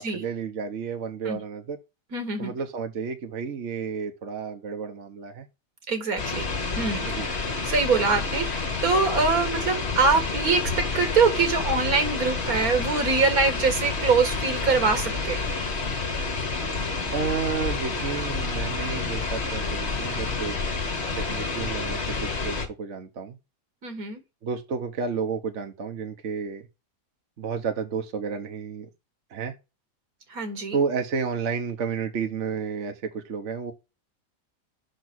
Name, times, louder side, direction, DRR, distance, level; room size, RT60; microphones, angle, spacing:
voice 1, 0.0-1.8 2.4-5.5 7.1-7.3 17.1-20.6 21.1-23.4 24.4-26.7 27.4-28.9 29.3-29.5 30.7-33.7, right 6 dB, 55° right, 1.3 m, -31 dB
voice 2, 2.1-2.5 5.9-6.5 6.8-7.1 7.6-15.4 23.8-24.2 30.3-30.8, right 4 dB, 80° right, 2.2 m, -24 dB
sound 1, 6.2-22.7, left 4 dB, 50° left, 1.7 m, -29 dB
6.1 x 4.6 x 6.0 m
omnidirectional pair, 1.5 m